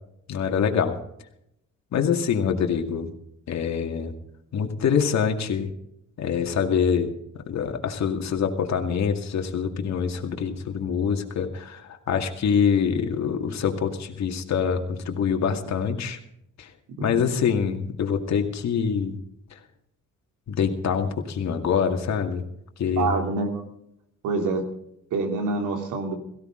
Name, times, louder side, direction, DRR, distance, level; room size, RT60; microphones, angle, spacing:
voice 1, 0.3-1.0 1.9-3.1 3.5-4.1 4.5-5.7 6.2-16.2 16.6-16.7 17.0-19.2 20.5-22.4 22.8-23.1, left 7 dB, 65° left, 5 dB, 2.2 m, -25 dB
voice 2, 17.0-17.4 23.0-23.6 24.2-24.6 25.1-26.1, right 3 dB, 85° right, 4 dB, 3.3 m, -26 dB
17.0 x 16.0 x 3.9 m, 0.76 s
cardioid pair, 90°, 30 cm